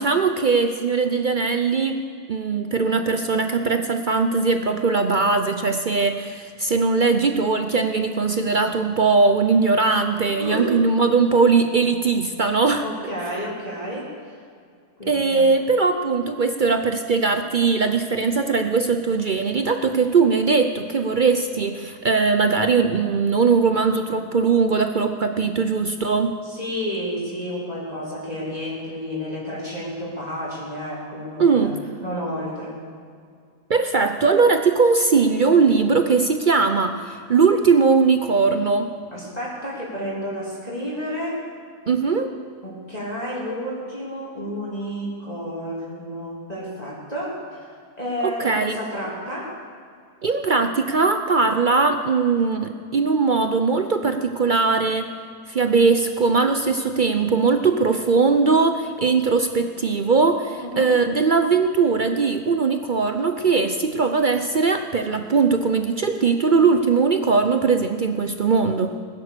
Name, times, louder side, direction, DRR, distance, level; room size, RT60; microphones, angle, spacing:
voice 1, 0.0-2.0 2.3-12.9 15.1-26.4 31.4-31.8 33.7-38.9 41.9-42.3 48.4-48.8 50.2-55.1 55.5-69.0, right 4 dB, 60° right, 7 dB, 0.5 m, -20 dB
voice 2, 10.4-10.8 12.8-14.1 15.0-15.4 26.4-32.8 39.1-41.4 42.6-49.5 60.6-60.9, equal, 25° left, -6 dB, 3.2 m, -31 dB
19.5 x 10.5 x 6.8 m, 2.2 s
omnidirectional pair, 1.7 m